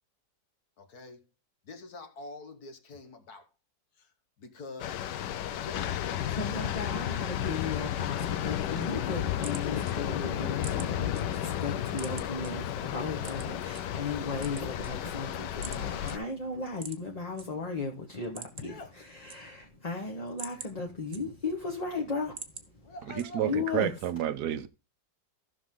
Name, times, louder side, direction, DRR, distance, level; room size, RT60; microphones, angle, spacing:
voice 1, 0.8-1.3 1.6-3.5 3.9-5.2 5.5-6.7 18.5-19.0 22.8-23.5, left 3 dB, 60° left, 1.8 m, -46 dB
sound 1, 4.8-16.2, left 11 dB, 80° left, 1.4 m, -33 dB
voice 2, 6.3-18.8 19.1-22.4 22.7-22.8 23.4-23.9, left 4 dB, 25° left, 1.2 m, -36 dB
sound 2, 9.3-11.2 11.6-12.5 13.2-13.8 14.3-15.3 15.6-15.8 16.1-16.2 16.7-17.5 17.8-17.9 18.2-18.8 19.1-19.8 20.2-21.6 22.0-22.7 23.2-23.6, right 6 dB, 45° right, 1.2 m, -44 dB
voice 3, 23.1-24.7, right 11 dB, 70° right, 1.3 m, -30 dB
15.0 x 6.0 x 3.7 m
omnidirectional pair, 1.9 m